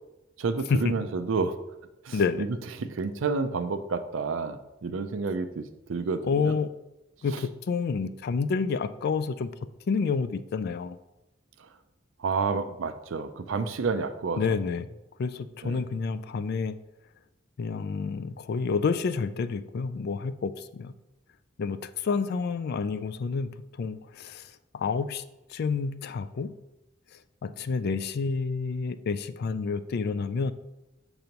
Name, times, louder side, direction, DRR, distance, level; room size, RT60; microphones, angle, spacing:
voice 1, 0.4-1.6 2.1-2.5 2.8-6.5 7.3-7.4 12.2-14.4 15.6-15.8, right 4 dB, 85° right, 9 dB, 0.5 m, -30 dB
voice 2, 2.1-2.5 6.2-6.7 7.2-9.5 9.9-11.0 14.4-14.9 15.2-16.8 17.6-20.9 21.6-25.2 25.5-26.5 27.4-30.5, left 5 dB, 55° left, 13 dB, 0.3 m, -29 dB
6.7 x 3.0 x 5.2 m, 0.98 s
head